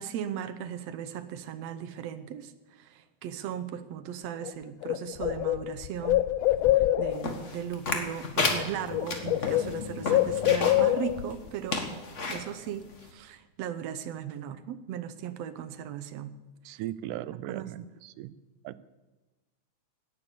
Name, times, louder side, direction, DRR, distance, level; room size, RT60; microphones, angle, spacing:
voice 1, 0.0-6.2 6.8-11.8 12.3-16.3 16.7-16.8 17.3-17.7, right 9 dB, 70° right, 12 dB, 1.8 m, -37 dB
Bird, 4.4-4.5 4.8-7.3 8.4-8.6 8.9-11.3, left 14 dB, 85° left, 1.4 m, -25 dB
sound 1, 7.2-10.9 11.3-11.4 11.7-12.4 13.0-13.1, left 3 dB, 35° left, 1.3 m, -31 dB
voice 2, 16.7-18.3 18.6-18.8, right 13 dB, 85° right, 17 dB, 2.1 m, -38 dB
17.0 x 10.0 x 6.9 m, 1.2 s
omnidirectional pair, 3.5 m